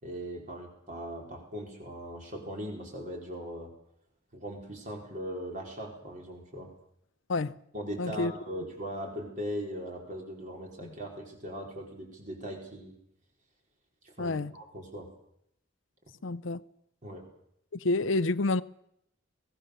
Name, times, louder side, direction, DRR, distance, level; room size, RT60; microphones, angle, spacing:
voice 1, 0.0-3.7 4.3-6.7 7.7-12.9 14.0-15.1 17.0-17.3, equal, 40° right, 4.7 m, -39 dB
voice 2, 8.0-8.3 14.2-14.5 16.2-16.6 17.7-18.6, left 2 dB, 65° left, 0.7 m, -28 dB
23.5 x 17.0 x 6.7 m
head